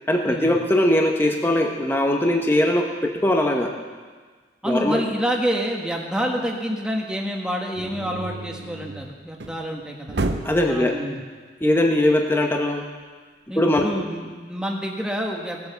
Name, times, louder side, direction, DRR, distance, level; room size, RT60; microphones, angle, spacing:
voice 1, 0.1-3.7 4.6-5.0 10.4-11.0 11.6-12.8 13.6-13.9, left 1 dB, 10° left, 2 dB, 1.0 m, -20 dB
voice 2, 4.6-10.2 10.7-11.2 13.5-15.7, equal, 5° right, 0 dB, 1.4 m, -27 dB
sound 1, 7.7-9.6 10.1-10.7, right 2 dB, 70° right, 0.8 m, -30 dB
18.0 x 8.4 x 6.9 m, 1.5 s
head